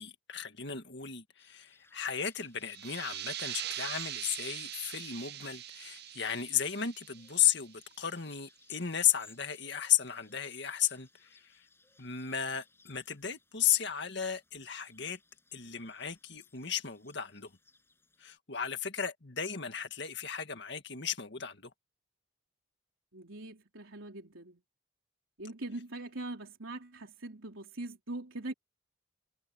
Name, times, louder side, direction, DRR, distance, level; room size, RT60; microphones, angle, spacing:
voice 1, 0.0-11.4 12.0-15.2 15.5-17.5 18.2-21.7, left 9 dB, 55° left, 2.0 m, -34 dB
sound 1, 1.4-18.4, left 3 dB, 10° left, 7.2 m, -64 dB
sound 2, 2.6-8.0, right 12 dB, 50° right, 0.7 m, -42 dB
voice 2, 23.1-24.6 25.4-28.5, right 2 dB, 80° right, 3.7 m, -42 dB
head